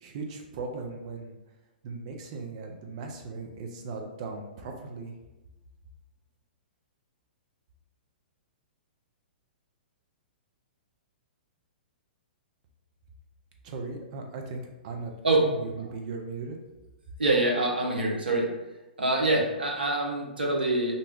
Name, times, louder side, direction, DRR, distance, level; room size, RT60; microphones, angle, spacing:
voice 1, 0.0-1.4 1.8-5.1 13.6-15.1 15.4-16.6, right 4 dB, 45° right, 2 dB, 0.5 m, -38 dB
voice 2, 17.2-18.5 19.0-21.0, right 2 dB, 75° right, -1 dB, 0.7 m, -25 dB
2.6 x 2.2 x 3.5 m, 1.0 s
figure-of-eight pair, 115°, 5 cm